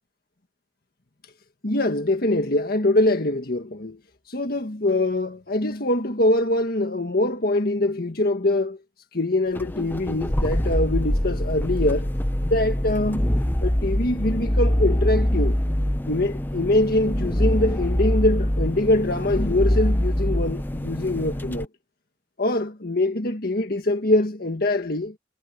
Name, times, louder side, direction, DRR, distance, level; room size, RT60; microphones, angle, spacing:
voice 1, 1.6-4.0 4.3-8.8 9.1-12.1 12.4-13.3 13.6-15.6 16.1-21.7 22.4-25.1, left 1 dB, 60° left, 1.7 m, -23 dB
sound 1, 9.5-21.6, equal, 10° left, 0.9 m, -24 dB
head